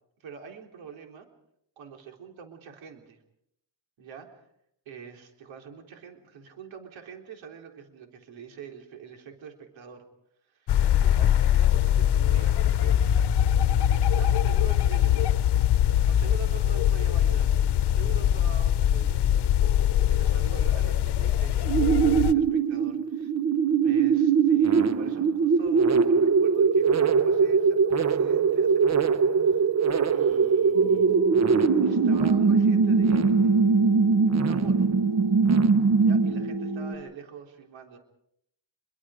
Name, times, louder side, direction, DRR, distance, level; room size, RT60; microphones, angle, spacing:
voice 1, 0.2-1.3 1.8-3.2 4.0-4.4 4.9-10.1 10.5-13.2 13.6-15.3 15.9-17.6 17.9-19.3 19.6-23.3 23.8-29.1 29.4-29.7 30.1-31.1 31.8-34.9 36.0-38.0, right 7 dB, 90° right, 3 dB, 3.8 m, -45 dB
sound 1, 10.7-22.3, left 10 dB, 60° left, 1.0 m, -22 dB
sound 2, 21.7-36.5, right 5 dB, 35° right, 1.0 m, -21 dB
sound 3, 30.7-36.9, right 2 dB, 55° right, 3.9 m, -32 dB
27.0 x 23.0 x 5.1 m, 0.75 s
cardioid pair, 125°, 45 cm